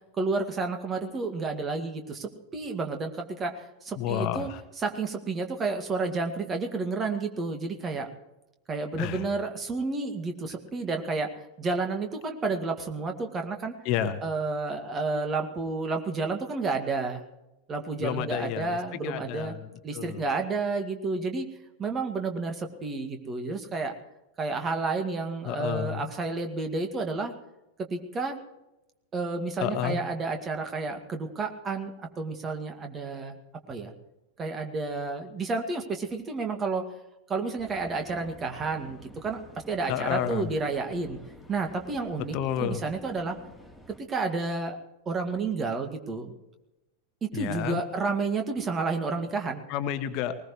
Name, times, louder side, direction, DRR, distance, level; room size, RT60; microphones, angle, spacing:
voice 1, 0.2-4.5 4.8-8.1 8.7-11.3 11.6-13.7 14.2-17.2 17.7-19.5 19.8-21.5 21.8-23.9 24.4-27.3 27.9-28.4 29.1-33.4 33.7-33.9 34.4-36.9 37.3-39.4 39.7-41.2 41.5-43.4 43.9-44.8 45.1-46.3 47.2-49.6, right 3 dB, 20° right, 5 dB, 2.1 m, -31 dB
voice 2, 4.0-4.6 9.0-9.3 13.8-14.2 18.0-19.6 19.9-20.2 25.4-26.1 29.6-30.0 39.9-40.5 42.2-42.8 47.3-47.8 49.7-50.4, left 9 dB, 40° left, 10 dB, 1.2 m, -30 dB
sound 1, 37.6-44.0, equal, ahead, 2.9 m, -50 dB
20.0 x 20.0 x 3.2 m, 0.95 s
figure-of-eight pair, 90°, 0 cm